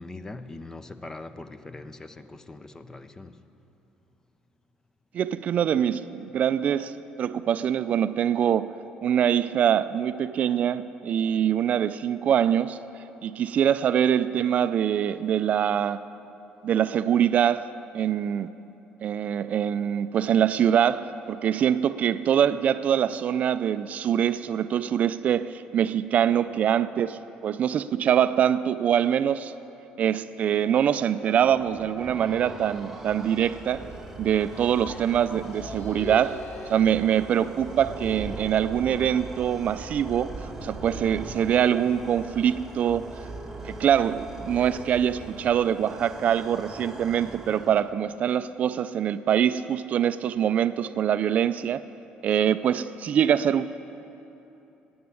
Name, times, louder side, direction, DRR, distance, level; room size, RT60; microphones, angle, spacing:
voice 1, 0.0-3.4, left 2 dB, 15° left, 0.5 m, -41 dB
voice 2, 5.1-6.9 7.2-12.8 13.2-16.0 16.6-17.7 17.9-18.5 19.0-29.5 30.0-33.9 34.2-36.4 36.7-43.2 43.6-51.9 52.2-53.7, right 9 dB, 50° right, 0.3 m, -24 dB
sound 1, 31.2-48.2, right 2 dB, 10° right, 1.1 m, -40 dB
sound 2, 34.5-38.5, left 4 dB, 55° left, 0.9 m, -43 dB
10.5 x 8.7 x 9.6 m
cardioid pair, 115°, 3 cm